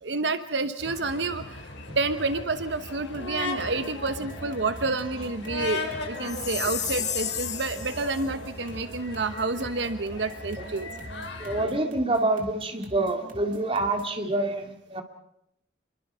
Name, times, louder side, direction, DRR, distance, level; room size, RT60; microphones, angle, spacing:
voice 1, 0.0-1.7 2.0-10.9, right 3 dB, 75° right, 10 dB, 1.1 m, -29 dB
sound 1, 0.8-11.6, left 2 dB, 85° left, 4.8 m, -38 dB
sound 2, 3.1-14.2, right 1 dB, 45° right, 2.6 m, -44 dB
Chime, 6.2-8.2, left 9 dB, 40° left, 1.8 m, -32 dB
voice 2, 11.4-15.0, right 2 dB, 30° right, 5 dB, 2.5 m, -27 dB
27.0 x 23.0 x 5.7 m, 0.77 s
head